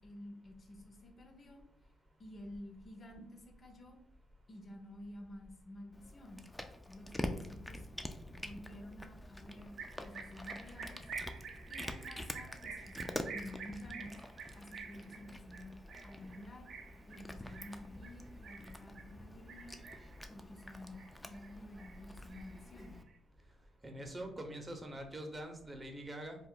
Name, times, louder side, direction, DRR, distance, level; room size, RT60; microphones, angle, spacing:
voice 1, 0.0-1.6 2.2-4.0 4.5-6.4 6.9-7.9 8.3-11.0 11.7-14.2 14.6-15.7 16.0-16.7 17.1-19.8 20.3-23.0, left 1 dB, 45° left, 3 dB, 0.6 m, -51 dB
Cat, 5.9-23.0, left 1 dB, 10° left, 0.3 m, -47 dB
sound 1, 9.8-19.1 19.5-20.2 20.6-21.5 21.8-23.1, right 5 dB, 70° right, 0.4 m, -49 dB
voice 2, 23.8-26.4, right 1 dB, 25° right, 4 dB, 0.6 m, -44 dB
2.3 x 2.0 x 3.7 m, 0.69 s
supercardioid pair, 60°, 0 cm